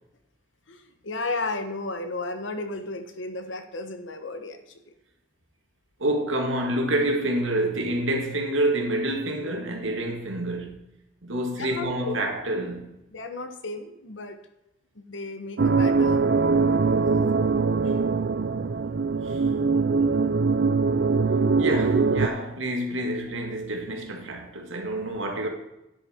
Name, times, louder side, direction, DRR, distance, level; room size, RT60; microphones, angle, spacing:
voice 1, 0.7-4.9 11.6-12.2 13.1-14.4 14.9-16.3, left 3 dB, 80° left, 1.2 m, -34 dB
voice 2, 6.0-10.8 11.2-13.0 17.8-17.9 19.2-19.4 21.6-25.5, right 1 dB, 90° right, 2.1 m, -28 dB
sound 1, 15.6-22.3, right 4 dB, 60° right, 0.4 m, -22 dB
9.8 x 8.2 x 4.4 m
head